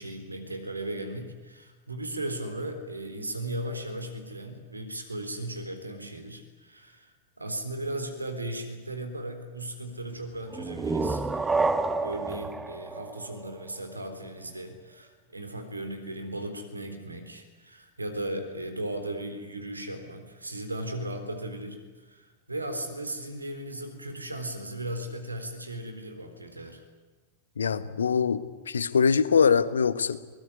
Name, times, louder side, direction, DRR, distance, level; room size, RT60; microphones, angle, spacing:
voice 1, 0.0-11.7 12.0-26.8, right 1 dB, 80° right, 7 dB, 3.8 m, -37 dB
sound 1, 10.5-14.1, right 3 dB, 10° right, 1.4 m, -29 dB
voice 2, 27.6-30.2, left 6 dB, 70° left, 14 dB, 1.2 m, -23 dB
22.5 x 20.5 x 9.8 m, 1.3 s
figure-of-eight pair, 90°, 0 cm